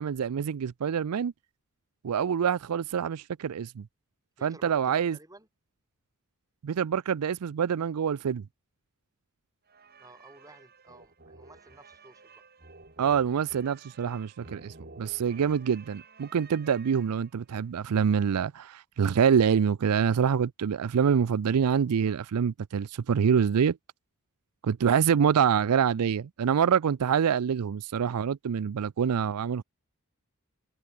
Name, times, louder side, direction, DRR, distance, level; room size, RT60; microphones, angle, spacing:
voice 1, 0.0-1.3 2.0-3.9 4.4-5.2 6.6-8.4 13.0-23.8 24.6-29.6, right 7 dB, 90° right, 0.4 m, -26 dB
voice 2, 4.4-5.5 10.0-12.4, right 2 dB, 15° right, 7.2 m, -54 dB
sound 1, 9.7-17.5, right 3 dB, 45° right, 4.2 m, -52 dB
head